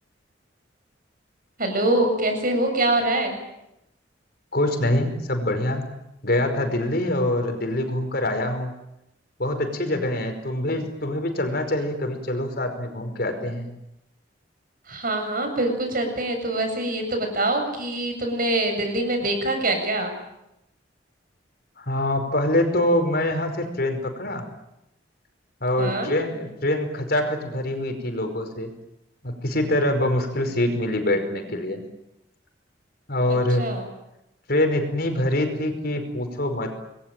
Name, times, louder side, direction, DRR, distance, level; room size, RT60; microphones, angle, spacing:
voice 1, 1.6-3.4 14.9-20.1 25.8-26.1 33.3-33.9, right 1 dB, 50° right, 5 dB, 7.6 m, -24 dB
voice 2, 4.5-5.9 6.2-8.7 9.4-13.7 21.8-24.5 25.6-28.7 29.2-31.8 33.1-33.7 34.5-36.9, left 1 dB, 55° left, 6 dB, 5.2 m, -24 dB
27.0 x 21.5 x 9.2 m, 0.85 s
head